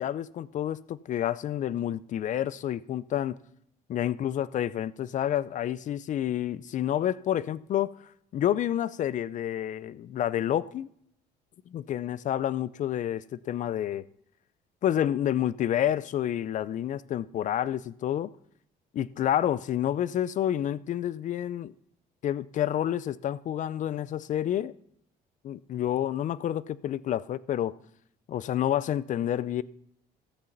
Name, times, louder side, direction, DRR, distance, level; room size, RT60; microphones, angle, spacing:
voice 1, 0.0-3.4 3.9-7.9 8.3-10.9 11.7-14.1 14.8-18.3 18.9-21.7 22.2-24.7 25.4-27.8 28.3-29.6, left 11 dB, 50° left, 0.4 m, -29 dB
13.5 x 8.2 x 4.0 m
cardioid pair, 110°, 17 cm